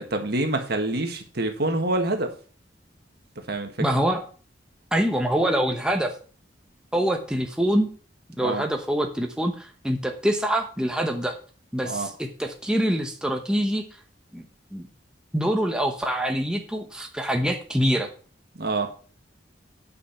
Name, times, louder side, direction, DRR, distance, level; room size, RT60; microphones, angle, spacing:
voice 1, 0.0-2.3 3.5-3.7 8.4-8.6 11.8-12.1 18.6-18.9, right 2 dB, 60° right, 5 dB, 1.7 m, -26 dB
voice 2, 3.8-4.2 4.9-6.1 6.9-7.9 8.4-11.4 11.7-13.8 14.3-14.4 14.7-14.9 15.3-18.1, equal, 5° right, 3 dB, 0.9 m, -25 dB
9.8 x 5.6 x 5.7 m, 0.40 s
head